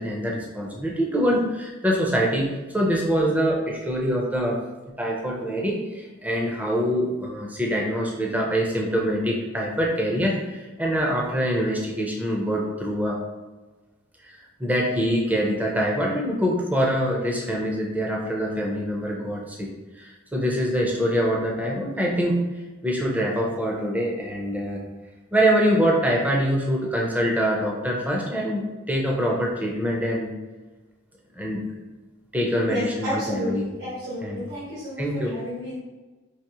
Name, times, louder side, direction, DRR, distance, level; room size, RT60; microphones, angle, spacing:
voice 1, 0.0-2.5 2.7-4.6 5.0-13.2 14.6-19.7 20.0-22.4 22.8-24.8 25.3-30.3 31.4-31.6 32.3-33.7 34.2-34.5 35.0-35.4, equal, 5° right, -2 dB, 0.6 m, -24 dB
voice 2, 32.7-35.7, left 1 dB, 70° right, -9 dB, 1.4 m, -31 dB
4.7 x 3.0 x 2.9 m, 1.2 s
head